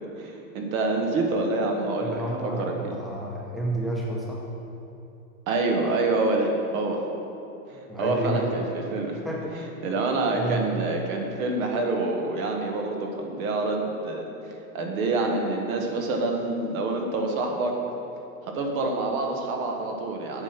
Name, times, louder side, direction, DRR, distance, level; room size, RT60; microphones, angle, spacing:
voice 1, 0.0-2.8 5.5-7.0 7.7-9.2 9.5-14.2 14.7-17.8 18.4-20.4, right 2 dB, 65° right, 2 dB, 1.6 m, -27 dB
voice 2, 2.0-4.5 7.9-8.5 9.2-9.6 10.3-10.7, right 1 dB, ahead, -3 dB, 0.8 m, -30 dB
8.8 x 5.9 x 5.9 m, 2.8 s
supercardioid pair, 135°, 45 cm